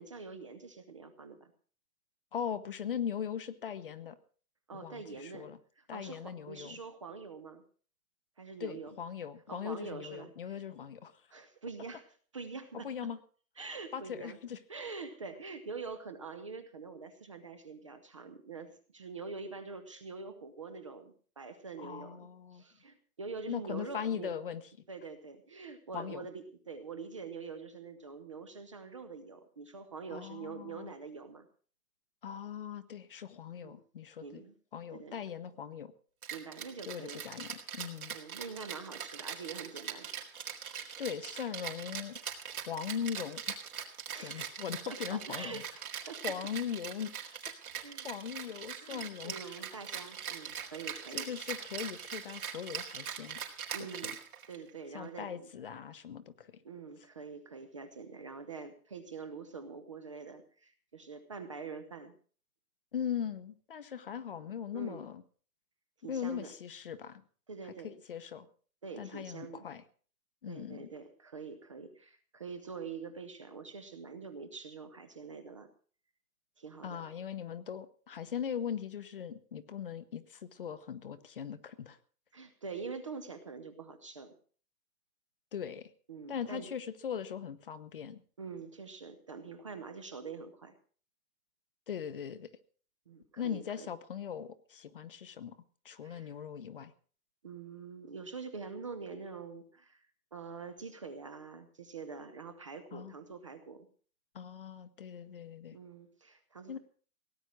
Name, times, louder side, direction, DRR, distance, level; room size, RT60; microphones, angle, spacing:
voice 1, 0.0-1.5 4.7-5.5 5.8-7.6 8.4-9.0 9.5-10.7 11.3-12.1 12.3-13.1 13.6-14.4 14.7-24.4 24.9-31.5 33.6-33.8 34.2-34.5 34.9-35.2 36.3-37.2 38.1-40.1 44.1-44.5 44.9-46.2 47.7-48.1 48.8-51.3 53.7-54.2 54.5-55.5 56.6-62.2 64.7-65.0 66.0-66.5 67.5-68.0 68.8-69.7 70.5-75.7 76.6-77.0 82.3-84.3 86.1-86.7 88.4-90.7 93.1-93.9 96.0-96.3 97.4-103.9 105.7-106.8, right 4 dB, 20° right, 9 dB, 0.7 m, -45 dB
voice 2, 2.3-4.2 4.7-5.6 5.9-6.8 8.6-11.1 12.8-13.2 13.9-14.6 21.8-22.6 23.5-24.6 25.9-26.3 30.1-30.9 32.2-34.4 34.7-35.9 36.9-38.2 41.0-42.2 42.7-43.6 44.2-45.6 46.2-47.1 48.0-49.6 51.1-53.4 54.0-54.1 54.9-56.5 62.9-65.2 66.1-67.2 67.6-68.5 69.0-69.8 70.4-70.9 76.8-82.0 85.5-85.9 86.3-88.2 91.9-92.5 93.4-95.5 95.8-96.9 102.9-103.1 104.3-105.8 106.7-106.8, left 8 dB, 35° left, 13 dB, 0.9 m, -40 dB
Rattle (instrument), 36.2-54.7, right 8 dB, 70° right, 4.0 m, -42 dB
17.5 x 9.8 x 6.2 m, 0.43 s
hypercardioid pair, 180°, 45 cm